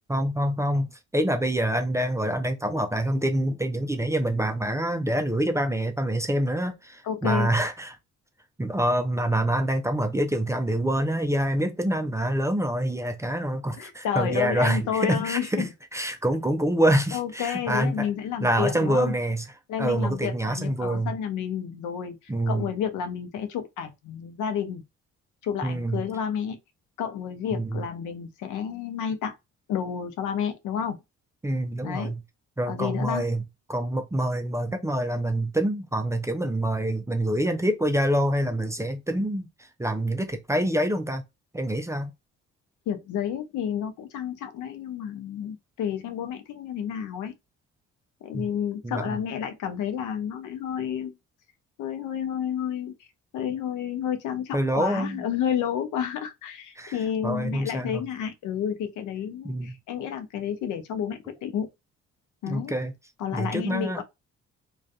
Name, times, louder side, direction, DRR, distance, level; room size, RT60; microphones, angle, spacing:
voice 1, 0.1-7.9 8.6-18.1 18.4-19.5 19.8-21.1 22.3-22.7 25.6-26.0 27.5-27.8 31.4-32.2 32.6-33.4 33.7-39.5 39.8-41.2 41.5-42.1 48.3-48.5 48.8-49.2 54.5-55.2 56.8-57.0 57.2-58.0 59.4-59.7 62.5-62.9 63.3-64.0, right 1 dB, 10° right, 0.4 m, -26 dB
voice 2, 7.0-7.5 13.7-15.7 17.1-19.1 19.7-24.8 25.4-26.6 27.0-29.4 29.7-31.0 31.8-32.1 32.7-33.3 42.9-47.3 48.2-51.1 51.8-53.1 53.3-61.7 62.4-62.7 63.2-64.0, left 8 dB, 80° left, 0.6 m, -30 dB
2.6 x 2.3 x 2.2 m
cardioid pair, 90°, 30 cm